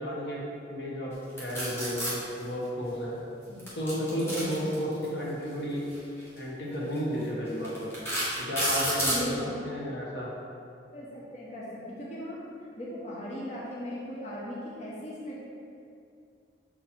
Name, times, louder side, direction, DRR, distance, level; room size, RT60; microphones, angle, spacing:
voice 1, 0.0-3.2 3.7-5.9 6.3-7.9 8.4-10.3, equal, 75° left, -5 dB, 1.4 m, -33 dB
sound 1, 1.4-2.1 3.6-5.0 6.2-6.4 7.0-7.1 7.6-9.2, equal, 15° left, 1.5 m, -29 dB
voice 2, 4.1-4.7 9.1-9.7 10.9-12.4 12.8-15.4, left 1 dB, 40° left, -7 dB, 1.0 m, -38 dB
6.7 x 4.4 x 4.4 m, 2.5 s
head